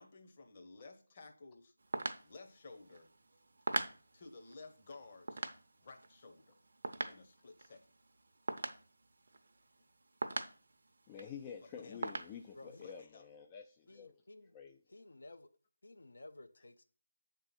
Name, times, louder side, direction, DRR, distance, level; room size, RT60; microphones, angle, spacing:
voice 1, 0.0-1.7 2.2-3.1 4.1-5.4 5.8-6.6 7.0-7.9 11.6-12.0 12.8-13.2, left 3 dB, 30° left, 4 dB, 0.9 m, -55 dB
sound 1, 1.8-9.9 10.2-11.4 11.7-11.8 12.0-13.0, right 3 dB, 45° right, 0.6 m, -42 dB
voice 2, 11.1-14.2 14.5-14.8, left 7 dB, 15° left, 3 dB, 0.3 m, -49 dB
voice 3, 12.5-12.9 13.9-14.6 14.9-15.5 15.8-16.8, left 2 dB, 60° left, 8 dB, 0.6 m, -55 dB
7.8 x 3.7 x 5.7 m, 0.41 s
figure-of-eight pair, 160°, 0 cm